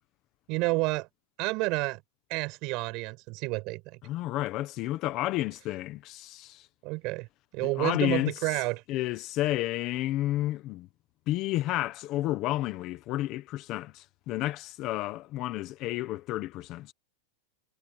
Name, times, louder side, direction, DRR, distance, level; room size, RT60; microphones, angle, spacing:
voice 1, 0.5-1.1 1.4-2.0 2.3-4.0 6.8-7.3 7.5-8.8, right 24 dB, 40° right, 6.7 m, -30 dB
voice 2, 4.0-6.7 7.6-10.9 11.3-16.9, left 15 dB, 30° left, 1.0 m, -31 dB
supercardioid pair, 165°, 0 cm